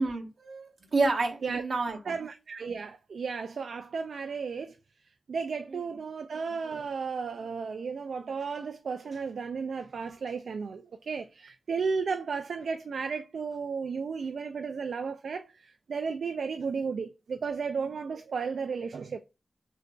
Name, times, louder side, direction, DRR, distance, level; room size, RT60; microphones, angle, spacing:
voice 1, 0.0-2.2, right 3 dB, 55° right, 1.0 m, -29 dB
voice 2, 2.1-4.8 5.3-19.2, right 5 dB, 75° right, 0.3 m, -34 dB
6.4 x 2.6 x 2.2 m
wide cardioid pair, 150°, 0 cm